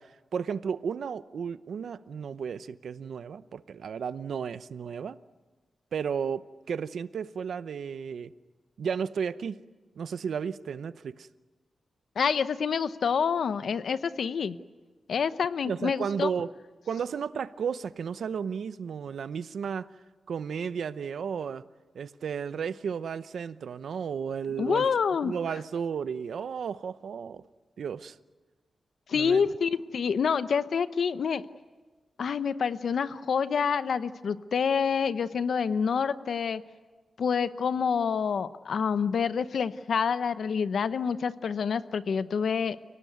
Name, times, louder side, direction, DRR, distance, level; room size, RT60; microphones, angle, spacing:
voice 1, 0.0-5.2 5.9-8.3 8.8-9.6 9.9-11.3 15.6-16.5 16.9-19.9 20.3-21.6 21.9-24.9 25.2-27.4 27.8-28.2 29.1-29.5, right 7 dB, 70° right, 14 dB, 0.8 m, -33 dB
voice 2, 12.2-14.6 15.1-16.3 24.6-25.3 29.1-31.4 32.2-36.6 37.2-42.8, left 6 dB, 65° left, 13 dB, 0.8 m, -27 dB
30.0 x 18.0 x 9.5 m, 1.3 s
wide cardioid pair, 165°, 0 cm